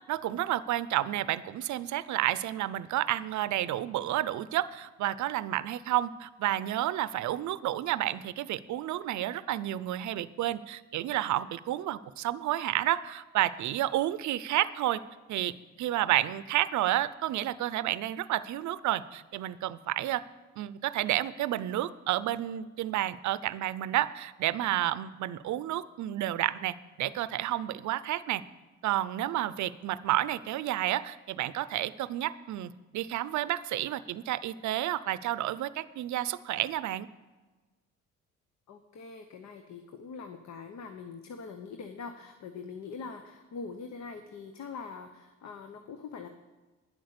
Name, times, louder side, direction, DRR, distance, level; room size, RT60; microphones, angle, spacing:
voice 1, 0.1-15.0 15.3-20.2 20.6-28.4 28.8-37.1, right 13 dB, 70° right, 17 dB, 0.6 m, -30 dB
voice 2, 38.7-46.3, left 5 dB, 65° left, 7 dB, 0.9 m, -43 dB
10.0 x 8.0 x 6.7 m, 1.2 s
cardioid pair, 90°, 30 cm